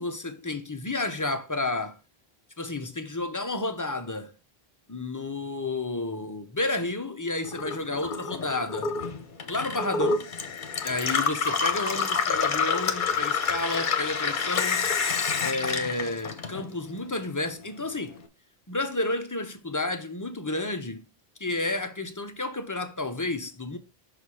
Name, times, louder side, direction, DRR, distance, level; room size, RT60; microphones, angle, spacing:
voice 1, 0.0-2.0 2.6-4.3 4.9-8.9 9.5-10.2 10.8-14.9 15.4-18.2 18.7-21.1 21.4-23.8, left 2 dB, 20° left, 0.6 m, -31 dB
Gurgling / Water tap faucet / Sink (filling or washing), 7.4-17.0 17.3-18.2, left 5 dB, 55° left, 0.9 m, -28 dB
5.8 x 4.2 x 4.7 m
omnidirectional pair, 1.0 m